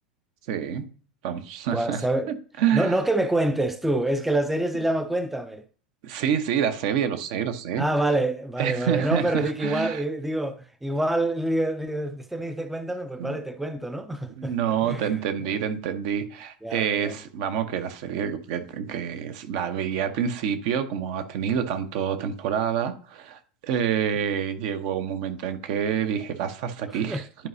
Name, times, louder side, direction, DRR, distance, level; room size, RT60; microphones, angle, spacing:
voice 1, 0.5-0.8 1.2-2.0 2.6-3.0 6.0-7.8 8.6-10.0 13.2-13.4 14.4-27.5, right 8 dB, 55° right, 1.0 m, -27 dB
voice 2, 1.7-2.3 2.7-5.6 7.8-15.5 16.6-17.2 27.1-27.2, right 1 dB, 5° right, 0.5 m, -27 dB
10.5 x 4.8 x 2.7 m
figure-of-eight pair, 85°, 5 cm